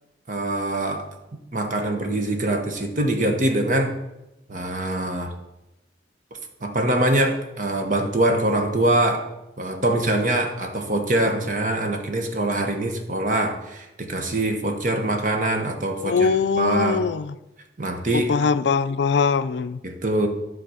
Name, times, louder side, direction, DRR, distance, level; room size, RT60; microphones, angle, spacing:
voice 1, 0.3-3.9 4.5-5.3 6.6-9.3 9.6-17.0 17.8-18.3 19.8-20.3, right 1 dB, 45° right, 1.1 m, -24 dB
voice 2, 16.0-17.4 18.1-19.8, left 5 dB, 70° left, 0.4 m, -22 dB
10.5 x 3.9 x 6.3 m
head